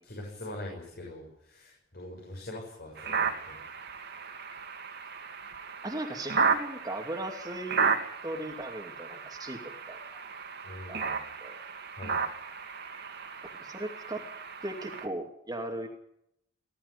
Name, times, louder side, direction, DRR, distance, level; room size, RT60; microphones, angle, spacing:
voice 1, 0.0-3.6 10.6-11.2 11.9-12.2, left 1 dB, 50° left, -1 dB, 6.8 m, -43 dB
sound 1, 3.0-15.1, right 5 dB, 55° right, 2.7 m, -34 dB
voice 2, 5.8-7.9 8.2-10.3 10.9-11.6 13.6-14.2 14.6-15.9, right 1 dB, 20° right, 3 dB, 2.5 m, -38 dB
20.0 x 13.5 x 9.7 m, 0.74 s
head